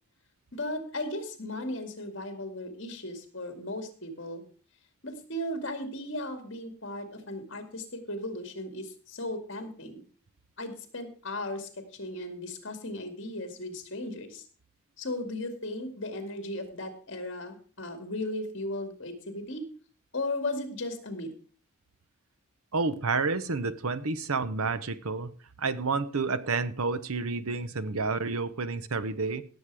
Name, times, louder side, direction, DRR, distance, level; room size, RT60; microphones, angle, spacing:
voice 1, 0.5-4.4 5.0-10.0 10.6-14.4 15.0-19.7 20.1-21.3, left 1 dB, 55° left, 7 dB, 2.3 m, -36 dB
voice 2, 22.7-25.3 25.6-29.4, right 4 dB, 80° right, 14 dB, 0.9 m, -30 dB
17.5 x 7.3 x 4.8 m, 0.41 s
head